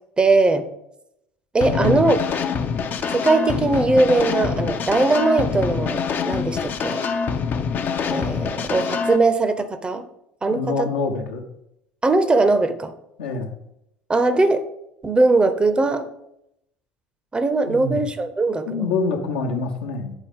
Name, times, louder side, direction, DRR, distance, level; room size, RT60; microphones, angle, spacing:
voice 1, 0.2-0.7 1.5-2.2 3.1-7.1 8.0-10.1 10.4-10.9 12.0-12.9 14.1-14.6 15.0-16.1 17.3-18.9, right 3 dB, 20° right, 9 dB, 0.7 m, -20 dB
voice 2, 1.6-2.0 10.5-11.4 13.2-13.5 17.7-18.0 18.7-20.1, left 3 dB, 70° left, 3 dB, 0.9 m, -25 dB
sound 1, 1.6-9.2, left 6 dB, 40° left, 0.5 m, -25 dB
9.1 x 4.0 x 3.6 m, 0.81 s
figure-of-eight pair, 60°, 5 cm